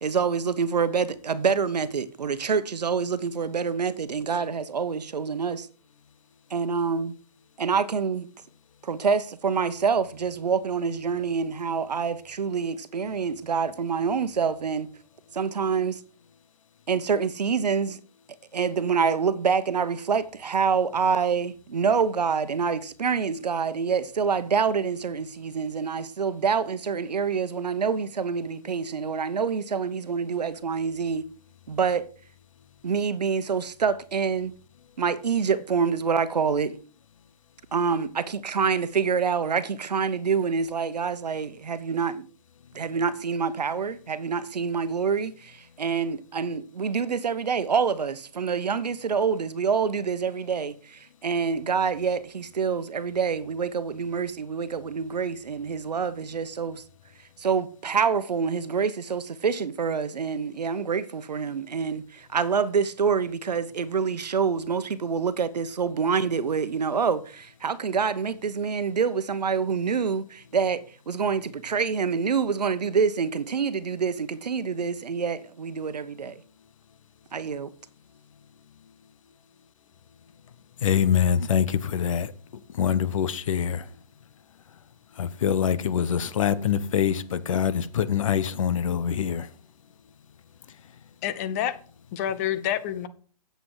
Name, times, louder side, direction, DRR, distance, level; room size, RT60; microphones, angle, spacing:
voice 1, 0.0-5.7 6.5-7.2 7.6-8.3 8.8-14.9 15.3-16.0 16.9-18.0 18.5-31.2 31.7-32.1 32.8-34.5 35.0-36.8 37.7-42.3 42.7-56.8 57.4-76.4 77.3-77.7, right 6 dB, 85° right, 1.0 m, -26 dB
voice 2, 80.8-82.3 82.7-83.9 85.2-89.5, left 8 dB, 55° left, 0.9 m, -24 dB
voice 3, 91.2-91.8 92.1-93.1, left 10 dB, 25° left, 0.6 m, -28 dB
8.5 x 7.8 x 4.9 m
hypercardioid pair, 150°, 20 cm